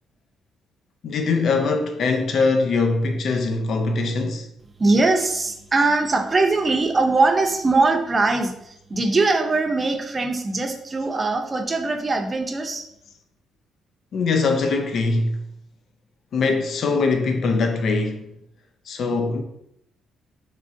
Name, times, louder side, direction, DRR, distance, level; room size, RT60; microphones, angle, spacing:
voice 1, 1.0-4.5 14.1-15.4 16.3-18.3 18.9-19.4, left 3 dB, 65° left, 0.4 m, -22 dB
voice 2, 4.8-12.9, right 3 dB, 30° right, 0.5 m, -21 dB
3.6 x 3.0 x 2.5 m
cardioid pair, 90°, 0 cm